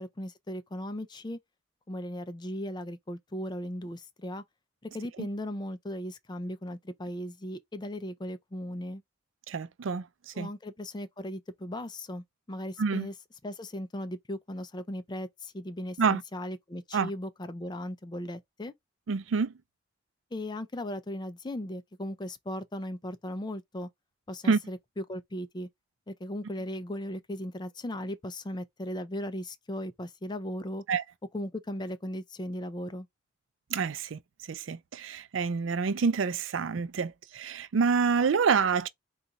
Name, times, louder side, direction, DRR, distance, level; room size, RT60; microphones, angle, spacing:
voice 1, 0.0-1.4 1.9-4.4 4.9-9.0 10.3-13.1 13.4-18.7 20.3-23.9 24.3-25.7 26.1-30.8 31.3-33.1, left 1 dB, 20° left, 0.4 m, -37 dB
voice 2, 9.5-10.5 12.8-13.1 16.0-16.2 16.9-17.1 19.1-19.5 24.4-24.6 30.9-31.0 33.7-34.2 34.5-38.9, right 5 dB, 75° right, 0.4 m, -27 dB
4.1 x 2.4 x 3.9 m
head